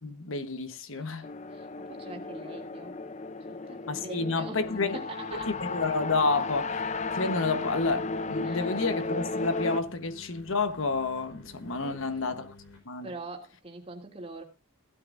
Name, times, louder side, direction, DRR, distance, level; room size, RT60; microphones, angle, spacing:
voice 1, 0.0-1.3 3.9-5.0 5.4-12.5 12.8-13.1, left 3 dB, 60° left, 1.2 m, -30 dB
sound 1, 1.2-9.8, left 3 dB, 30° left, 0.7 m, -34 dB
voice 2, 1.5-2.9 3.5-4.6 4.9-5.5 8.4-8.7 11.8-12.0 13.0-14.4, right 2 dB, 25° right, 2.8 m, -43 dB
sound 2, 5.3-12.8, left 2 dB, 85° left, 4.9 m, -52 dB
16.5 x 12.5 x 2.6 m
head